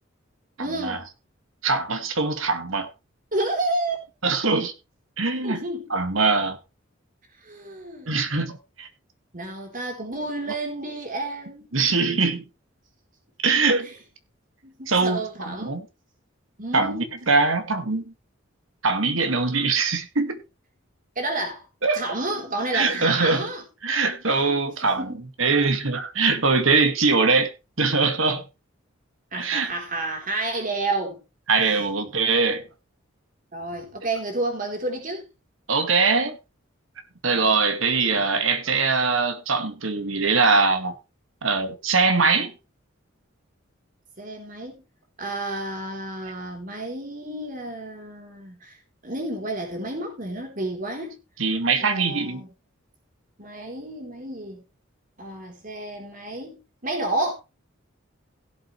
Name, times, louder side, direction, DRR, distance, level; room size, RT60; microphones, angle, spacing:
voice 1, 0.6-1.0 3.3-4.0 5.4-5.9 7.4-8.1 9.3-11.8 14.6-15.8 16.6-17.1 21.2-21.6 21.9-23.6 24.5-25.2 29.3-31.2 33.5-35.3 44.2-44.8 45.2-48.8 49.0-51.2 51.8-52.5 53.4-54.6 55.2-57.3, right 2 dB, 40° right, 4.0 m, -30 dB
voice 2, 1.6-2.9 4.2-4.7 5.2-5.6 5.9-6.6 8.1-8.9 11.7-12.4 13.4-13.9 14.9-15.8 16.7-18.1 18.8-20.4 21.8-22.0 22.7-23.5 23.8-27.5 27.8-28.4 29.3-29.7 31.5-32.7 35.7-36.4 37.2-40.9 41.4-42.5 51.4-52.5, right 4 dB, 75° right, 2.1 m, -22 dB
17.0 x 7.9 x 3.3 m
head